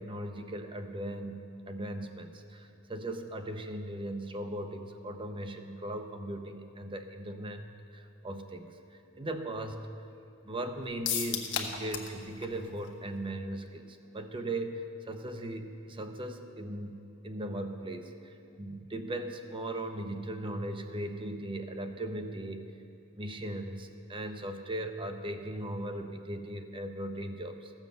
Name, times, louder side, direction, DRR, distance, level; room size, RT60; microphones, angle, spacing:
voice 1, 0.0-9.9 10.4-22.7 23.1-27.7, right 1 dB, 25° right, 6 dB, 0.7 m, -38 dB
sound 1, 11.1-12.2 12.4-12.5 12.9-13.0, left 8 dB, 60° left, 1.0 m, -33 dB
14.5 x 7.3 x 6.6 m, 2.6 s
head